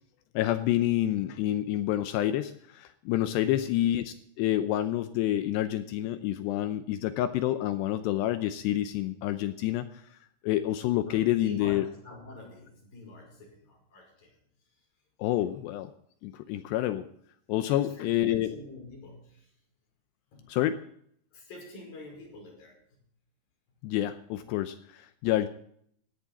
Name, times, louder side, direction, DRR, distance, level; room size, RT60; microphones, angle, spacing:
voice 1, 0.3-10.0 10.4-11.8 15.2-15.9 16.2-17.1 17.5-18.5 20.5-20.8 23.8-25.5, left 13 dB, 85° left, 11 dB, 2.4 m, -28 dB
voice 2, 11.1-14.4 15.4-15.5 17.6-19.5 20.3-20.6 21.3-23.0 25.2-25.4, left 2 dB, 45° left, 0 dB, 6.9 m, -47 dB
18.0 x 14.0 x 4.2 m, 0.67 s
omnidirectional pair, 5.7 m